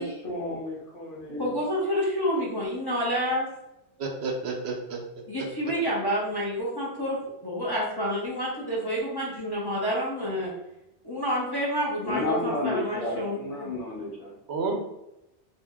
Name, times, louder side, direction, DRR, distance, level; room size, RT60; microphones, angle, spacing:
voice 1, 0.0-1.6 12.0-14.4, left 2 dB, 55° left, -5 dB, 1.1 m, -32 dB
voice 2, 1.4-3.5 5.3-7.2 7.4-10.5 11.0-13.7, equal, 30° left, -6 dB, 0.6 m, -28 dB
voice 3, 4.0-5.0 5.4-5.5 14.5-14.8, right 3 dB, 75° right, 1 dB, 0.8 m, -30 dB
2.6 x 2.0 x 3.4 m, 0.89 s
omnidirectional pair, 1.1 m